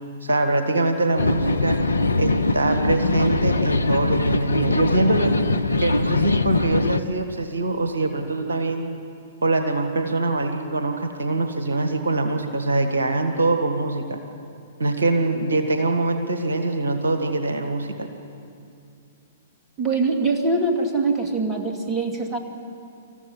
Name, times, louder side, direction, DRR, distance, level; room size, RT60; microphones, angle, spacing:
voice 1, 0.2-1.8 2.2-5.3 5.8-8.9 9.4-14.2 14.8-18.1, right 2 dB, 70° right, 6 dB, 1.7 m, -23 dB
sound 1, 1.2-7.0, left 3 dB, 80° left, 0.7 m, -22 dB
voice 2, 19.8-22.4, right 3 dB, 20° right, 3 dB, 2.6 m, -23 dB
27.0 x 14.5 x 9.8 m, 2.5 s
figure-of-eight pair, 110°, 0 cm